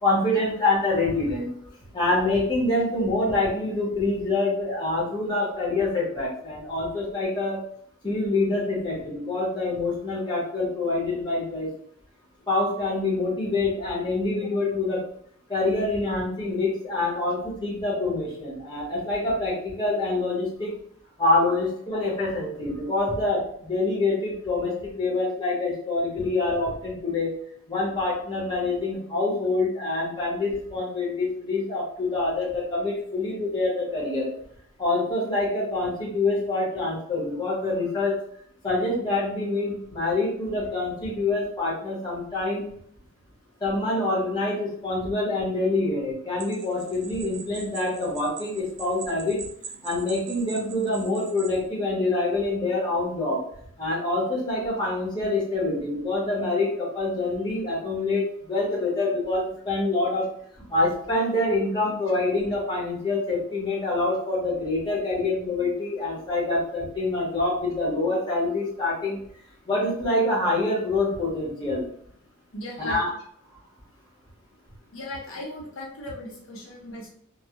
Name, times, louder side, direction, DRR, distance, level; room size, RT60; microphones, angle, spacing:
voice 1, 0.0-1.5 1.9-7.6 8.0-11.7 12.5-15.0 15.5-20.7 21.2-27.3 27.7-34.3 34.8-38.2 38.6-42.7 43.6-49.4 49.8-53.4 53.8-60.3 60.6-69.2 69.7-71.8 72.8-73.1, left 2 dB, 20° left, -5 dB, 0.8 m, -26 dB
sound 1, 46.4-51.6, right 5 dB, 55° right, 0.5 m, -43 dB
voice 2, 72.5-73.0 74.9-77.1, left 1 dB, 75° left, -3 dB, 0.7 m, -37 dB
2.2 x 2.0 x 2.8 m, 0.65 s
head